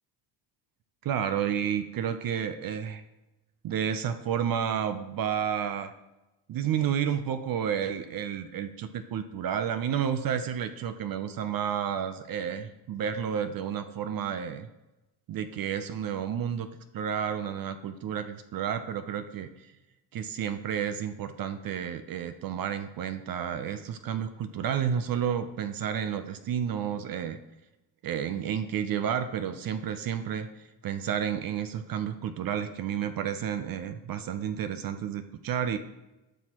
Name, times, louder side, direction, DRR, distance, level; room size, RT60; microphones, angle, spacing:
voice 1, 1.0-3.0 3.6-5.9 6.5-14.7 15.3-16.7 16.9-19.7 20.1-27.4 28.0-35.8, right 8 dB, 50° right, 10 dB, 0.6 m, -31 dB
12.0 x 6.1 x 2.9 m, 1.0 s
cardioid pair, 95°, 47 cm